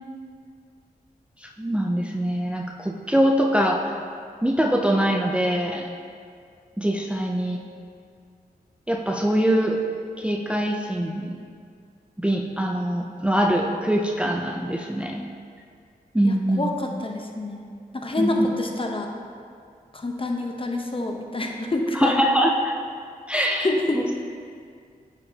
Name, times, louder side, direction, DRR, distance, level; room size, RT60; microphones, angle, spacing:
voice 1, 1.4-4.0 4.4-5.9 6.8-7.6 8.9-9.8 10.2-11.4 12.2-15.2 16.1-16.7 18.2-18.3 21.9-22.7 23.3-23.7 23.9-24.0, equal, 5° right, 1 dB, 0.5 m, -23 dB
voice 2, 16.2-17.6 17.9-19.1 19.9-22.1 23.3-24.1, left 2 dB, 35° left, 2 dB, 0.9 m, -27 dB
9.3 x 5.1 x 2.9 m, 2.2 s
cardioid pair, 45°, 17 cm